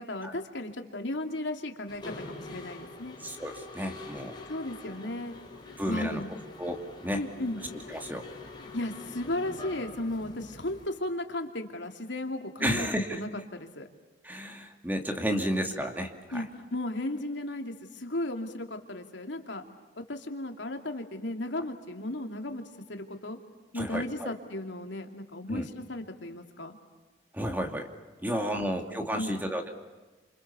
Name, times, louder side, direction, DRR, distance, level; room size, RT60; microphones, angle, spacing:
voice 1, 0.0-3.2 4.5-5.4 5.7-6.3 7.1-7.6 8.7-13.9 16.3-19.6 20.1-22.6 22.9-23.4 23.7-26.8 29.1-29.4, left 1 dB, 75° left, 4 dB, 2.8 m, -35 dB
Mechanisms, 1.9-10.9, left 3 dB, 25° left, 4.3 m, -45 dB
voice 2, 3.2-4.4 5.8-6.2 6.6-7.2 7.9-8.3 12.6-13.2 14.2-16.4 23.7-24.3 25.5-25.7 27.3-27.9 28.2-29.7, equal, 10° right, 4 dB, 2.5 m, -32 dB
29.5 x 27.5 x 7.0 m, 1.2 s
head